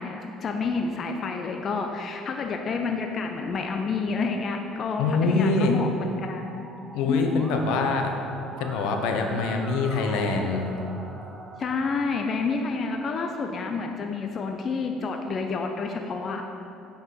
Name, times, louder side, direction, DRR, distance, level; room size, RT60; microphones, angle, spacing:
voice 1, 0.0-6.7 7.1-7.4 11.6-16.4, left 4 dB, 40° left, 4 dB, 0.6 m, -29 dB
voice 2, 5.0-5.7 6.9-8.1 8.6-10.6, left 3 dB, 80° left, 4 dB, 1.0 m, -24 dB
Musical instrument, 6.2-11.7, right 2 dB, 30° right, 1.1 m, -43 dB
8.1 x 5.8 x 5.9 m, 2.7 s
cardioid pair, 115°, 0 cm